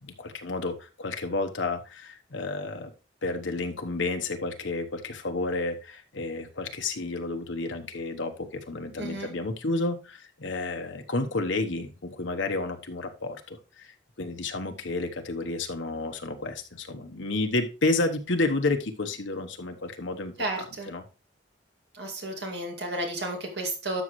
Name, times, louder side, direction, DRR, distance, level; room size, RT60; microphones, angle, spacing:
voice 1, 0.0-2.9 3.2-21.0, left 2 dB, 80° left, 5 dB, 1.1 m, -31 dB
voice 2, 9.0-9.3 20.4-20.9 21.9-24.0, right 1 dB, 60° right, 2 dB, 2.3 m, -32 dB
12.0 x 6.3 x 3.1 m, 0.33 s
head